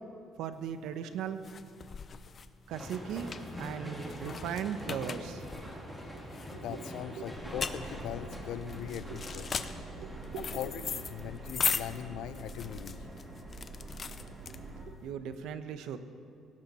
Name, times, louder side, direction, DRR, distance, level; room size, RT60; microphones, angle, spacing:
voice 1, 0.4-1.4 2.7-3.3 3.6-5.5 5.7-6.2 6.5-7.5 9.1-9.2 9.9-10.6 14.8-16.0, right 8 dB, 80° right, 10 dB, 1.0 m, -39 dB
sound 1, 0.6-15.0, left 6 dB, 35° left, 0.6 m, -39 dB
sound 2, 2.7-12.0, equal, ahead, 2.8 m, -45 dB
voice 2, 6.5-9.5 10.3-13.0, left 11 dB, 75° left, 14 dB, 0.6 m, -40 dB
Subway metro underground, 7.3-14.8, right 2 dB, 30° right, 2.2 m, -45 dB
17.5 x 17.5 x 4.3 m, 2.4 s
cardioid pair, 140°, 0 cm